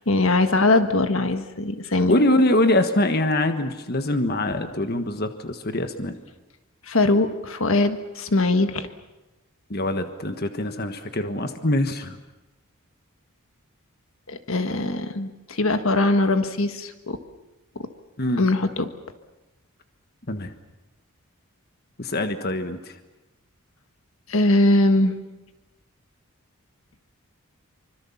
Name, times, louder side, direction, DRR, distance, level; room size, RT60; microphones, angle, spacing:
voice 1, 0.1-2.1 6.9-8.9 14.3-17.2 17.8-17.9 18.4-18.9 24.3-25.1, left 2 dB, 65° left, 8 dB, 1.6 m, -21 dB
voice 2, 2.1-6.2 9.7-12.2 18.2-18.4 20.3-20.5 22.0-23.0, left 1 dB, 45° left, 8 dB, 1.5 m, -23 dB
26.0 x 25.0 x 7.2 m, 1.1 s
head